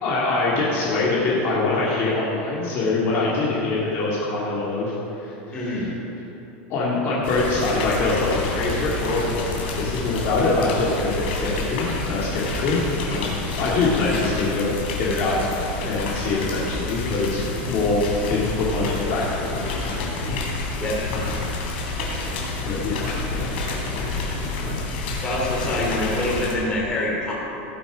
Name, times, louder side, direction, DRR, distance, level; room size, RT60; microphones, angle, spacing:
voice 1, 0.0-5.9 6.7-12.8 13.1-13.3 13.6-15.4 15.8-18.0 18.3-20.4 20.7-20.8 21.1-21.4 22.6-23.5 23.8-24.8 25.6-25.8, left 3 dB, 40° left, -6 dB, 2.1 m, -24 dB
voice 2, 5.5-5.9 20.8-21.0 25.2-27.3, left 1 dB, 15° left, -4 dB, 2.8 m, -25 dB
sound 1, 7.2-26.5, left 3 dB, 85° left, 3.2 m, -29 dB
17.5 x 8.2 x 5.1 m, 2.9 s
supercardioid pair, 175°, 6 cm